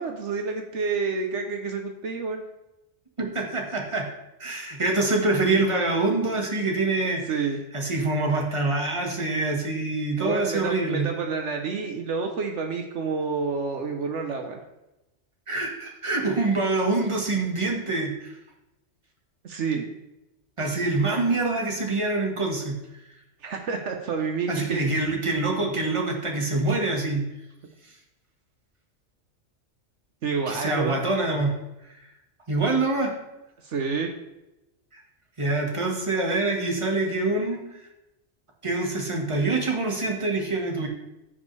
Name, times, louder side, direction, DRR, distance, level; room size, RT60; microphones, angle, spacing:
voice 1, 0.0-2.4 7.2-7.6 10.2-14.6 19.4-19.9 23.4-24.8 30.2-31.0 33.6-34.1, right 5 dB, 70° right, 3 dB, 1.2 m, -29 dB
voice 2, 3.2-4.1 4.4-7.2 7.7-11.1 15.5-18.3 20.6-22.8 24.5-27.2 30.5-31.5 32.5-33.1 34.9-35.0 35.4-37.6 38.6-40.9, right 2 dB, 25° right, 0 dB, 1.6 m, -25 dB
15.0 x 5.4 x 3.3 m, 0.95 s
omnidirectional pair, 1.3 m